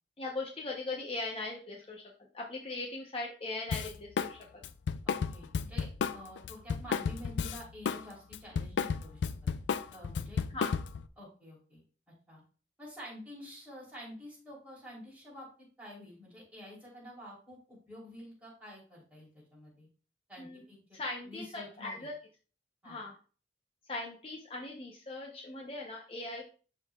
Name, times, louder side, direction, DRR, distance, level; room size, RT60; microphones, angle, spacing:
voice 1, 0.2-2.0 2.3-4.4 10.5-10.7 20.4-20.6 20.9-22.1 22.8-23.1 23.9-26.4, left 2 dB, 30° left, -1 dB, 0.7 m, -39 dB
Drum kit, 3.7-4.3 4.6-8.0 8.3-11.1, left 6 dB, 85° left, 0.4 m, -33 dB
voice 2, 5.0-9.5 9.9-10.4 11.2-11.8 12.3-12.4 12.8-19.9 20.3-21.0 21.2-22.1 22.8-23.0, equal, 10° right, -6 dB, 3.1 m, -49 dB
11.5 x 3.9 x 2.3 m, 0.38 s
head